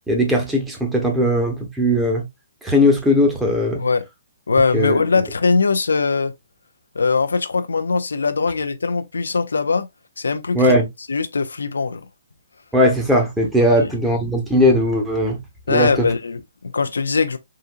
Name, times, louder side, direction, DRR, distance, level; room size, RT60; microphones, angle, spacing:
voice 1, 0.1-2.2 2.6-3.8 4.7-5.0 10.5-10.9 12.7-15.4 15.7-16.1, equal, 5° right, 0.9 m, -18 dB
voice 2, 4.5-6.3 7.0-9.9 10.2-10.7 11.1-12.0 13.7-13.9 15.7-17.4, left 4 dB, 75° left, 0.4 m, -21 dB
3.7 x 2.7 x 2.4 m
figure-of-eight pair, 130°, 0 cm